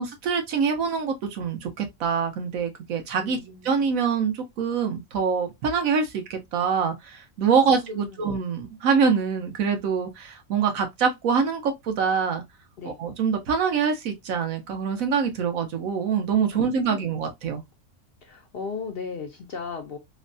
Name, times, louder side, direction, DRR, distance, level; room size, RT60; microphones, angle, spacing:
voice 1, 0.0-12.4 12.8-17.6, right 6 dB, 80° right, 1.2 m, -25 dB
voice 2, 3.2-3.8 7.5-8.2 12.8-13.0 16.5-17.1 18.2-20.0, left 5 dB, 60° left, 0.7 m, -37 dB
3.1 x 2.2 x 2.5 m
omnidirectional pair, 1.4 m